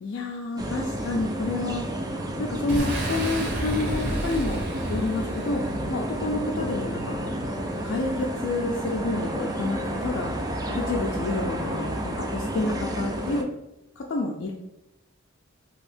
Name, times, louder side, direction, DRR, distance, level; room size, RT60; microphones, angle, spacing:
voice 1, 0.0-1.9 2.4-4.6 4.9-5.6 5.9-7.2 7.8-10.3 10.7-13.5 14.0-14.5, left 2 dB, 60° left, -1 dB, 0.3 m, -29 dB
sound 1, 0.6-13.4, right 1 dB, 20° right, 0.3 m, -31 dB
Boom, 2.7-6.3, right 1 dB, 55° right, 0.7 m, -31 dB
sound 2, 5.3-11.5, equal, 85° right, 1.1 m, -42 dB
2.8 x 2.6 x 3.4 m, 0.89 s
head